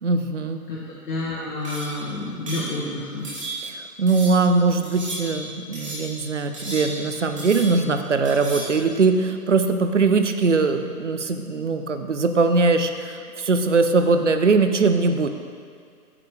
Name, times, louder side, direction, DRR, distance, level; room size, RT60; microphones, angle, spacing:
voice 1, 0.0-0.6 3.6-15.3, right 4 dB, 50° right, 7 dB, 0.5 m, -21 dB
voice 2, 0.7-3.3, left 2 dB, 85° left, -7 dB, 1.7 m, -29 dB
sound 1, 1.6-2.0 2.5-2.7 3.2-3.8 4.1-4.5 4.8-5.4 5.7-6.2 6.5-7.1 7.4-7.9 8.2-8.8, right 1 dB, 20° right, 1.4 m, -34 dB
8.5 x 6.8 x 3.3 m, 2.1 s
hypercardioid pair, 170°, 47 cm